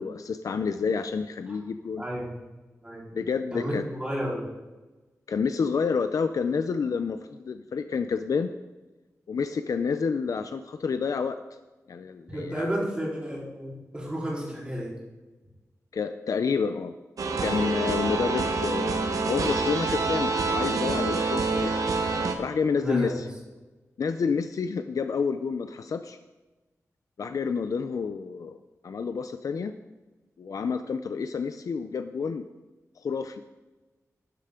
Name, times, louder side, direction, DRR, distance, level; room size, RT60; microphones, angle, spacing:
voice 1, 0.0-2.0 3.1-3.8 5.3-8.5 9.3-11.6 11.9-12.7 15.9-16.9 17.4-21.8 22.4-23.2 24.0-26.2 27.2-28.6 28.8-29.7 30.4-32.5 33.0-33.4, left 5 dB, 75° left, 9 dB, 0.5 m, -29 dB
voice 2, 2.0-2.3 2.8-3.0 3.5-4.5 12.3-14.9 22.8-23.2, equal, 20° right, -6 dB, 4.1 m, -32 dB
sound 1, 17.2-22.4, right 3 dB, 75° right, 1.1 m, -27 dB
12.5 x 10.0 x 3.7 m, 1.1 s
wide cardioid pair, 110°, 6 cm